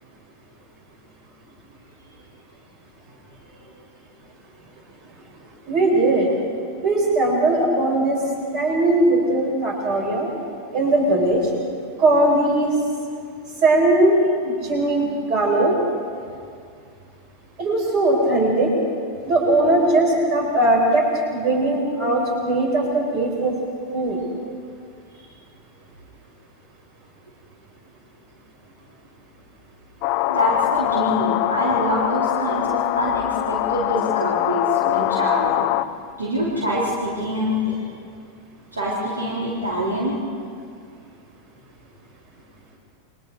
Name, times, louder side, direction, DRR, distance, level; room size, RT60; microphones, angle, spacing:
voice 1, 5.7-6.3 6.8-8.2 8.5-10.3 10.7-11.4 12.0-12.7 13.6-15.7 17.6-18.7 19.2-21.1 21.3-23.5 23.9-24.2, right 2 dB, 40° right, -1 dB, 7.0 m, -19 dB
sound 1, 30.0-35.9, left 15 dB, 45° left, 0.7 m, -23 dB
voice 2, 30.3-35.6 36.2-37.8 38.7-40.2, equal, 75° right, -6 dB, 4.0 m, -25 dB
29.5 x 23.5 x 4.9 m, 2.3 s
figure-of-eight pair, 90°, 0 cm